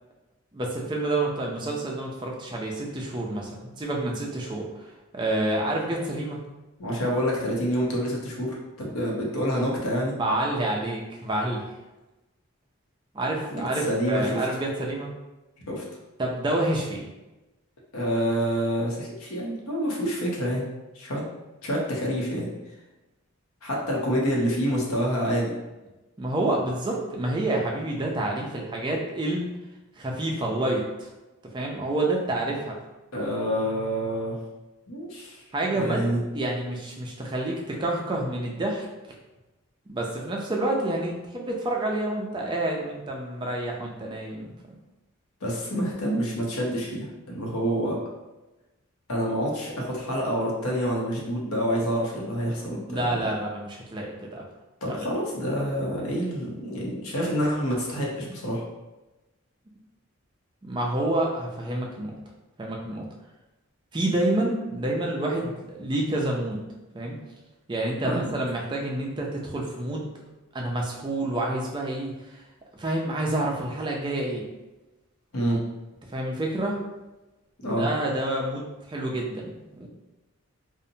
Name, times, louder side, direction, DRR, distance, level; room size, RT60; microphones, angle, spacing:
voice 1, 0.5-6.4 10.2-11.7 13.1-15.1 16.2-17.1 26.2-29.5 30.0-31.1 31.5-32.8 35.5-36.1 36.3-38.9 39.9-44.5 52.9-54.4 54.9-55.0 60.6-62.2 62.6-63.1 63.9-66.6 66.9-67.2 67.7-70.1 70.5-72.4 72.7-74.5 76.1-76.8 77.6-79.9, right 1 dB, 20° right, -1 dB, 0.3 m, -28 dB
voice 2, 6.8-10.1 13.8-14.4 15.7-15.8 17.9-20.6 20.9-21.2 21.6-22.5 23.6-25.5 33.1-34.4 34.9-35.4 35.7-36.2 45.4-48.0 49.1-53.2 54.8-58.6 68.0-68.3 75.3-75.6 77.6-77.9, equal, 85° left, -2 dB, 0.7 m, -27 dB
2.7 x 2.0 x 2.6 m, 1.0 s
head